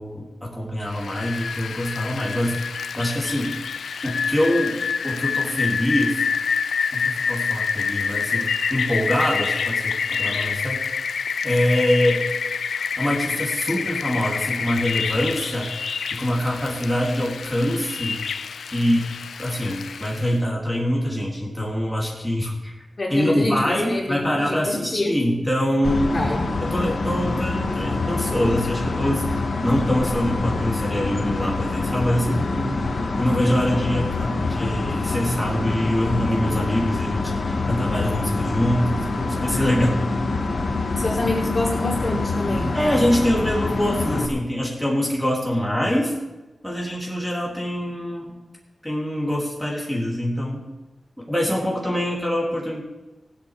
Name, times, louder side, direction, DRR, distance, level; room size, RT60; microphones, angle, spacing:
voice 1, 0.0-3.6 4.0-4.8 5.0-6.3 6.9-10.8 11.4-12.2 13.0-15.7 16.1-18.3 18.7-19.1 19.4-22.7 23.1-26.2 26.6-40.0 42.7-46.1 46.6-48.3 48.8-50.6 51.2-52.8, equal, 5° left, -4 dB, 3.6 m, -24 dB
Rain, 0.9-20.4, left 6 dB, 90° left, 0.4 m, -27 dB
voice 2, 23.0-25.2 26.1-26.4 40.9-42.7, left 2 dB, 40° left, -3 dB, 4.6 m, -27 dB
sound 1, 25.8-44.3, left 3 dB, 70° left, 1.8 m, -25 dB
15.5 x 8.4 x 6.8 m, 1.1 s
cardioid pair, 60°, 0 cm